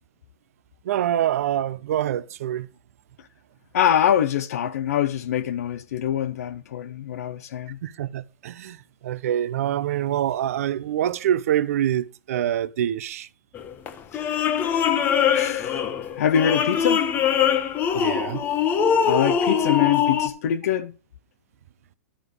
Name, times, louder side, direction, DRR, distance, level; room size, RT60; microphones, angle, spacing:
voice 1, 0.8-2.7 7.8-8.8 9.0-13.3 17.9-18.4, right 11 dB, 60° right, 0.7 m, -25 dB
voice 2, 3.7-7.8 14.1-15.0 15.3-17.1 19.0-20.9, left 9 dB, 65° left, 0.7 m, -25 dB
sound 1, 13.5-20.3, left 8 dB, 20° left, 1.0 m, -22 dB
11.5 x 5.1 x 6.3 m
hypercardioid pair, 145°, 9 cm